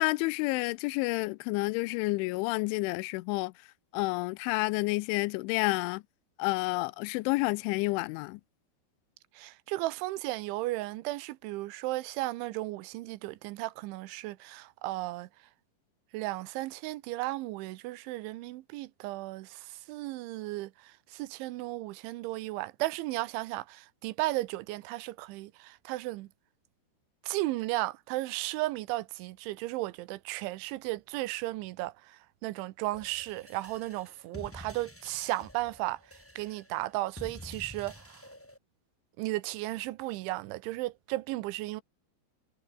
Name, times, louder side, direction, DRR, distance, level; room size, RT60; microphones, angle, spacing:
voice 1, 0.0-3.5 3.9-6.0 6.4-8.4, left 23 dB, 90° left, 3.0 m, -29 dB
voice 2, 9.4-15.3 16.1-26.3 27.2-36.0 36.4-38.2 39.2-41.8, right 18 dB, 90° right, 3.3 m, -35 dB
sound 1, 32.9-38.6, left 1 dB, 5° left, 1.3 m, -49 dB
omnidirectional pair, 5.4 m